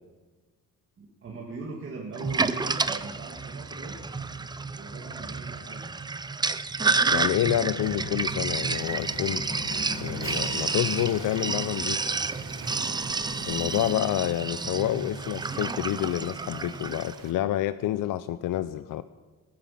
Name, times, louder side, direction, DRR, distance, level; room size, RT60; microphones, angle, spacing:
voice 1, 1.0-4.0 4.7-5.8 13.5-13.8, right 3 dB, 40° right, -2 dB, 2.2 m, -41 dB
Sink (filling or washing), 2.2-17.2, right 4 dB, 15° right, 0.4 m, -30 dB
voice 2, 7.1-9.4 10.0-12.0 13.5-19.0, left 13 dB, 70° left, 13 dB, 0.6 m, -28 dB
Drum, 7.8-12.7, left 3 dB, 40° left, 2.4 m, -41 dB
Waves surf, 8.6-17.3, right 6 dB, 75° right, 1.7 m, -46 dB
19.5 x 9.5 x 7.4 m, 1.3 s
cardioid pair, 165°, 34 cm